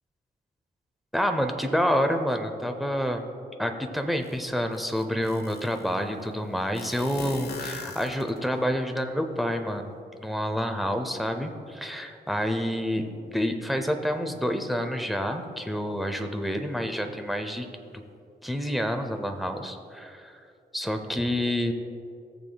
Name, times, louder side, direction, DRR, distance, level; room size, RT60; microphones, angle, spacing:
voice 1, 1.1-3.2 3.6-17.7 17.9-18.0 18.4-20.4 20.7-21.7, equal, ahead, 6 dB, 0.7 m, -28 dB
sound 1, 4.2-4.3 4.7-5.9 6.7-8.6, left 4 dB, 90° left, 1.1 m, -40 dB
17.5 x 6.9 x 2.3 m, 2.5 s
wide cardioid pair, 125°, 16 cm